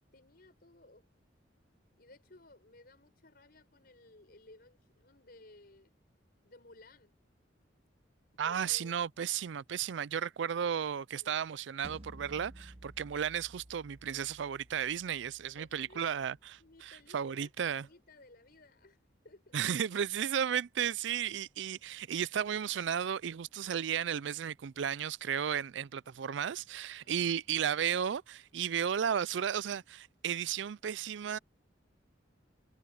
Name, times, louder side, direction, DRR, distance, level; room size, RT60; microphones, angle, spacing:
voice 1, 0.1-1.1 2.0-5.9 6.4-7.2 8.4-8.9 15.5-16.0 16.6-19.6 27.0-27.3, left 2 dB, 55° left, 5.2 m, -58 dB
voice 2, 8.4-17.9 19.5-31.4, right 8 dB, 75° right, 0.4 m, -34 dB
sound 1, 11.8-16.9, right 1 dB, 35° right, 1.3 m, -54 dB
head